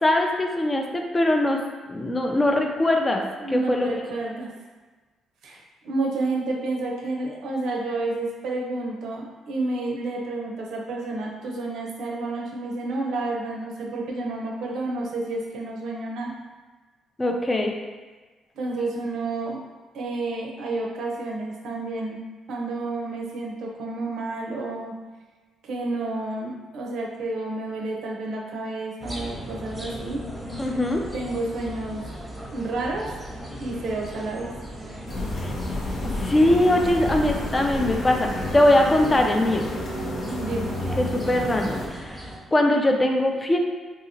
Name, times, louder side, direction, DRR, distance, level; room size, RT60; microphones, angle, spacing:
voice 1, 0.0-1.6 1.9-4.0 17.2-17.8 30.6-31.0 35.4-35.5 36.1-39.6 41.0-43.6, left 1 dB, 20° left, 2 dB, 0.3 m, -22 dB
voice 2, 3.4-4.5 5.4-16.3 18.5-19.6 19.9-22.2 22.5-24.9 25.6-30.2 31.1-32.1 32.5-33.1 33.6-34.5 40.3-40.7, right 2 dB, 80° right, -1 dB, 0.5 m, -30 dB
sound 1, 29.0-42.4, equal, 15° right, 0.7 m, -38 dB
sound 2, 35.1-41.9, left 1 dB, 75° left, 0.6 m, -30 dB
2.8 x 2.7 x 2.7 m, 1.3 s
cardioid pair, 90°, 0 cm